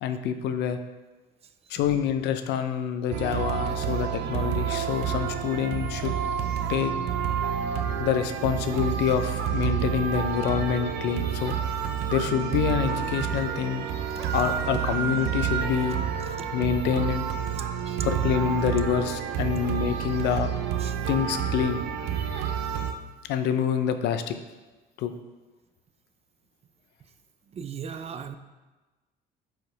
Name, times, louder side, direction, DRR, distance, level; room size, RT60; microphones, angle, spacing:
voice 1, 0.0-0.8 1.7-6.1 6.7-6.9 8.0-11.8 12.1-13.9 14.3-16.0 16.5-17.3 18.0-20.5 21.1-21.8 23.3-24.4 25.0-25.1, left 8 dB, 85° left, 9 dB, 0.6 m, -27 dB
sound 1, 3.1-22.9, right 8 dB, 80° right, 0.7 m, -29 dB
voice 2, 17.6-18.0 20.8-21.0 27.5-28.4, right 7 dB, 35° right, 10 dB, 0.5 m, -38 dB
11.5 x 4.7 x 3.3 m, 1.2 s
cardioid pair, 110°, 17 cm